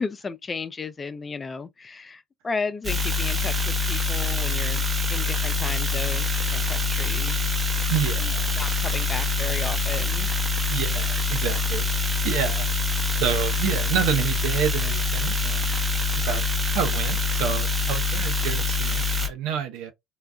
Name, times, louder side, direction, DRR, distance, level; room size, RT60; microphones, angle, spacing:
voice 1, 0.0-6.3 6.5-7.5 8.2-10.3, left 4 dB, 25° left, 0.4 m, -34 dB
sound 1, 2.8-19.3, left 4 dB, 25° right, 1.0 m, -25 dB
voice 2, 7.9-8.6 10.7-12.7 13.2-15.8 16.1-16.5 16.7-19.9, right 8 dB, 85° right, 0.7 m, -29 dB
3.8 x 2.3 x 2.2 m
cardioid pair, 105°, 0 cm